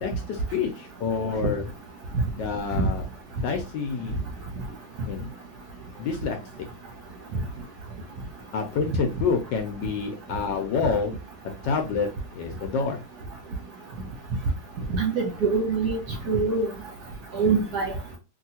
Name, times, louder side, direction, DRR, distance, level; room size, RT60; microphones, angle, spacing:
voice 1, 0.0-1.7 2.3-3.1 3.4-4.2 5.1-5.3 6.0-6.7 8.5-11.1 11.6-13.0, left 5 dB, 70° left, 1.1 m, -28 dB
voice 2, 14.9-16.0 16.3-16.7 17.3-17.9, right 4 dB, 65° right, 1.1 m, -24 dB
3.1 x 2.7 x 2.7 m
omnidirectional pair, 2.3 m